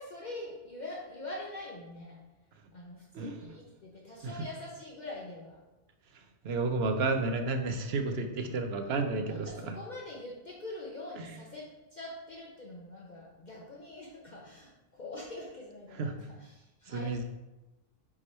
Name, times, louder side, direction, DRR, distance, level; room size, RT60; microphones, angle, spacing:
voice 1, 0.0-2.2 2.7-5.6 9.2-17.2, left 2 dB, 45° left, -4 dB, 0.9 m, -44 dB
voice 2, 6.4-9.7 16.0-16.2 16.9-17.2, right 3 dB, 70° right, 6 dB, 0.9 m, -31 dB
4.8 x 4.7 x 4.2 m, 1.0 s
omnidirectional pair, 1.1 m